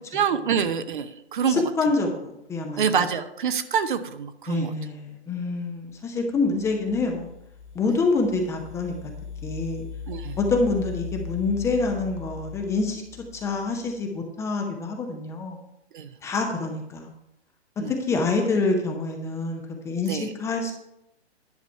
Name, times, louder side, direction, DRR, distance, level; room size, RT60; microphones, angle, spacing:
voice 1, 0.1-1.6 2.8-4.7 10.1-10.4 15.9-16.1 17.8-17.9 20.1-20.3, right 7 dB, 45° right, 10 dB, 0.8 m, -26 dB
voice 2, 1.5-3.1 4.5-7.3 7.7-8.9 9.4-9.9 10.4-13.0 13.3-15.6 16.2-17.1 17.9-20.7, left 3 dB, 10° left, 2 dB, 0.7 m, -26 dB
sound 1, 6.4-13.9, left 6 dB, 55° left, 2.1 m, -39 dB
10.5 x 6.2 x 5.5 m, 0.82 s
figure-of-eight pair, 125°, 34 cm